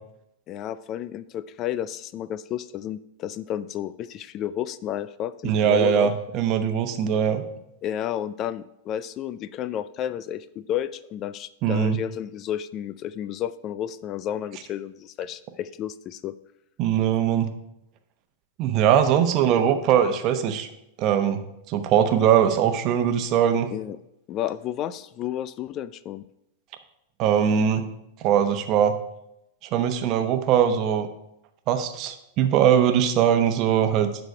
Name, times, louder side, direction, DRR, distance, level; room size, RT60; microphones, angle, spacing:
voice 1, 0.5-6.1 7.8-16.3 23.7-24.0 24.3-26.2, left 11 dB, 40° left, 16 dB, 0.3 m, -31 dB
voice 2, 5.4-7.4 11.6-12.0 16.8-17.5 18.6-20.7 21.0-21.4 21.7-23.7 27.2-27.8 28.2-29.0 29.7-31.1 31.7-34.1, right 9 dB, 45° right, 8 dB, 0.9 m, -21 dB
11.5 x 4.1 x 4.8 m, 0.82 s
hypercardioid pair, 110°, 0 cm